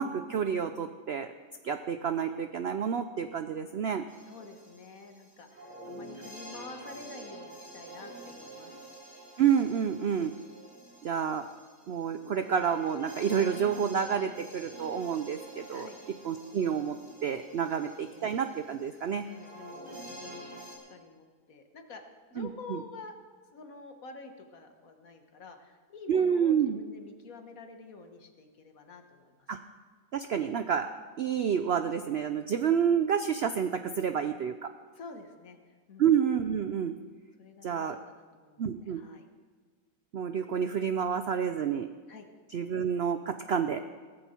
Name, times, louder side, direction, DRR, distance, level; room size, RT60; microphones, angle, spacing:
voice 1, 0.0-1.3 1.6-4.0 9.4-10.3 11.0-11.5 11.9-15.9 16.2-19.2 22.4-22.8 26.1-26.8 29.5-29.6 30.1-30.9 31.2-34.7 36.0-36.9 37.6-38.0 38.6-39.0 40.1-41.9 42.5-43.8, right 7 dB, 65° right, 9 dB, 0.6 m, -29 dB
sound 1, 4.1-20.8, right 1 dB, 25° right, 4.1 m, -48 dB
voice 2, 4.3-8.8 15.7-16.0 17.6-18.3 19.3-22.0 22.3-23.2 23.5-29.5 34.9-36.0 37.4-39.3 42.1-42.3, left 4 dB, 60° left, 6 dB, 1.7 m, -48 dB
16.5 x 14.5 x 4.4 m, 1.5 s
omnidirectional pair, 1.7 m